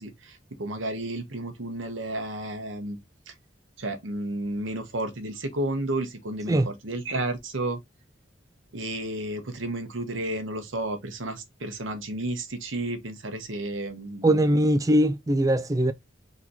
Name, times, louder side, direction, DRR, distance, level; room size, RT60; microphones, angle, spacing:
voice 1, 0.0-3.0 3.3-3.4 3.8-7.8 8.7-14.6, right 1 dB, 85° right, 1.1 m, -32 dB
voice 2, 14.2-15.9, right 1 dB, 20° right, 0.4 m, -21 dB
4.0 x 3.0 x 3.9 m
head